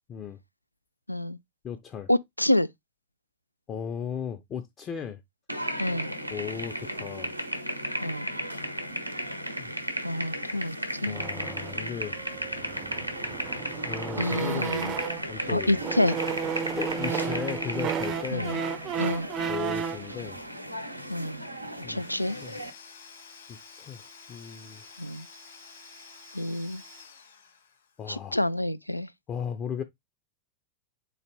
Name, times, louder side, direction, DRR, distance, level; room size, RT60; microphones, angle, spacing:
voice 1, 1.1-1.4 2.1-2.7 5.8-6.1 8.0-8.3 10.0-10.8 11.0-11.2 14.2-14.9 15.5-16.2 18.3-18.6 19.0-19.3 21.1-21.5 21.9-22.4 25.0-25.3 26.3-26.8 28.1-29.1, left 1 dB, 90° left, 0.3 m, -28 dB
voice 2, 1.6-2.1 3.7-5.2 6.3-7.3 9.6-9.7 11.1-12.2 13.9-15.8 16.8-18.5 19.5-20.4 21.8-22.0 22.4-22.6 23.5-24.0 24.3-24.8 28.0-28.4 29.3-29.8, left 7 dB, 30° left, 0.6 m, -36 dB
sound 1, 5.5-22.7, equal, 85° right, 0.8 m, -35 dB
sound 2, 11.1-15.4 15.8-20.1, right 6 dB, 30° right, 0.5 m, -33 dB
Domestic sounds home sounds / Tools, 21.9-28.0, left 4 dB, 60° left, 1.8 m, -50 dB
4.1 x 2.8 x 4.5 m
figure-of-eight pair, 90°, 0 cm